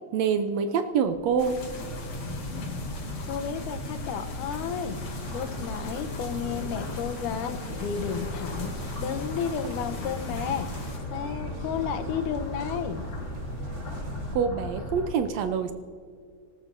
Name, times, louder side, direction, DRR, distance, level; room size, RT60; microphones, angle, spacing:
voice 1, 0.1-1.6 14.3-15.7, right 6 dB, 75° right, 8 dB, 1.7 m, -26 dB
sound 1, 1.0-15.1, left 1 dB, 30° left, 1.5 m, -36 dB
sound 2, 1.4-11.0, left 4 dB, 45° left, 2.6 m, -45 dB
voice 2, 3.3-4.9 5.3-8.7 9.0-10.7 11.1-13.0, left 8 dB, 85° left, 8 dB, 2.4 m, -32 dB
sound 3, 4.6-14.4, right 3 dB, 55° right, 2.2 m, -46 dB
25.0 x 13.5 x 2.6 m, 2.2 s
omnidirectional pair, 3.6 m